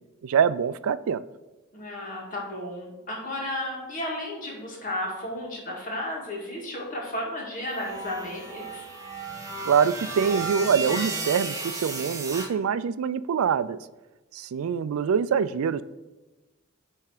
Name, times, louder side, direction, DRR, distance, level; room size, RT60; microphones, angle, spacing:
voice 1, 0.2-1.2 9.7-13.8 14.3-15.8, right 7 dB, 80° right, 17 dB, 0.3 m, -24 dB
voice 2, 1.7-8.8, left 1 dB, 40° left, -2 dB, 2.0 m, -33 dB
sound 1, 7.7-12.5, right 3 dB, 15° right, 1.0 m, -34 dB
10.0 x 3.5 x 4.9 m, 1.2 s
head